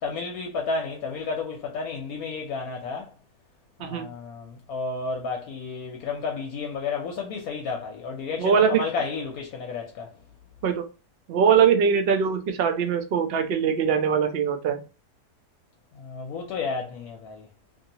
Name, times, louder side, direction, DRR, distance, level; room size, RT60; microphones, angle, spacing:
voice 1, 0.0-3.1 3.8-10.1 16.0-17.4, left 4 dB, 70° left, 1.0 m, -32 dB
voice 2, 8.4-8.8 10.6-10.9 11.3-14.8, right 7 dB, 75° right, 0.5 m, -22 dB
2.8 x 2.7 x 2.7 m
omnidirectional pair, 1.7 m